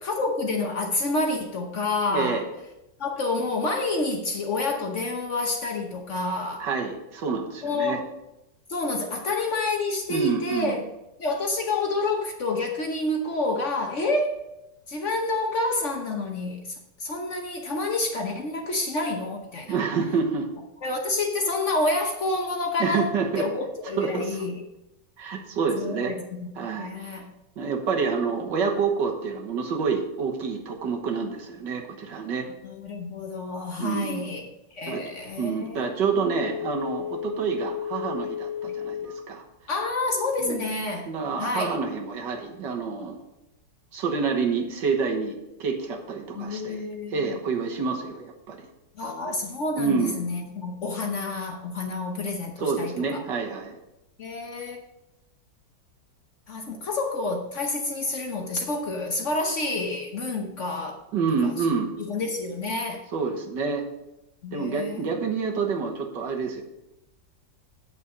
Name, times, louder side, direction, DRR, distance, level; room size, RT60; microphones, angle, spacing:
voice 1, 0.0-2.4 3.0-6.7 7.6-8.0 8.7-10.8 11.2-14.4 14.9-19.8 20.8-24.6 25.8-27.3 32.6-34.4 34.7-35.9 39.7-41.1 41.4-41.8 46.3-47.4 48.9-53.2 54.2-54.8 56.5-61.0 61.4-61.5 62.0-63.0 64.4-65.2, left 2 dB, 50° left, 2 dB, 1.1 m, -28 dB
voice 2, 2.1-2.4 6.6-8.0 10.1-10.8 19.7-20.5 22.8-23.5 24.0-24.4 25.2-26.1 26.6-27.2 27.6-32.5 33.8-34.3 34.9-35.0 35.4-39.4 40.4-40.7 41.1-43.2 43.9-46.8 47.1-48.7 49.8-50.2 52.6-53.8 61.1-61.9 63.1-63.8 64.5-66.6, right 5 dB, 75° right, 2 dB, 1.9 m, -28 dB
Telephone, 36.2-39.2 39.6-39.7, left 9 dB, 25° right, 2.4 m, -33 dB
8.5 x 6.3 x 5.3 m, 0.92 s
omnidirectional pair, 2.0 m